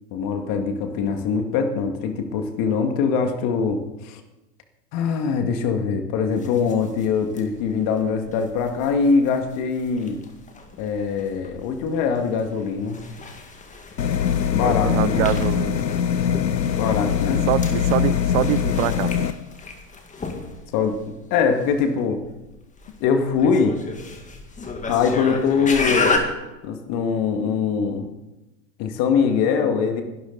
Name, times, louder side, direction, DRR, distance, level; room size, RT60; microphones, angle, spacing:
voice 1, 0.1-4.2 4.9-10.2 10.8-13.0 14.5-15.3 16.8-17.5 20.7-22.2 23.0-23.8 24.9-26.2 26.6-28.1 28.8-30.0, left 5 dB, 40° left, 6 dB, 2.2 m, -22 dB
sound 1, 6.3-26.2, left 4 dB, 15° left, 2.0 m, -33 dB
sound 2, 14.0-19.3, left 8 dB, 85° left, 1.0 m, -22 dB
voice 2, 14.6-15.9 17.5-19.1, right 15 dB, 45° right, 16 dB, 0.8 m, -24 dB
22.0 x 12.0 x 4.1 m, 1.0 s
figure-of-eight pair, 100°, 49 cm